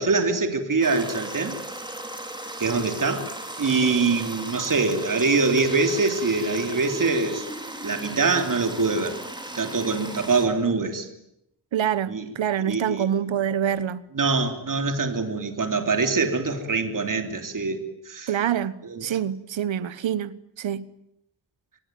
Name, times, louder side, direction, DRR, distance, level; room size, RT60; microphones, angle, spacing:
voice 1, 0.0-1.6 2.6-3.3 3.6-7.4 7.8-9.2 9.5-11.1 12.1-12.3 12.7-13.1 14.1-18.3 18.8-19.1, right 4 dB, 45° right, 3.3 m, -24 dB
sound 1, 0.8-10.5, right 1 dB, 10° right, 4.2 m, -36 dB
voice 2, 11.7-14.0 18.3-18.7 19.0-20.9, right 9 dB, 90° right, 1.3 m, -26 dB
26.0 x 21.0 x 9.4 m
wide cardioid pair, 130°, 45 cm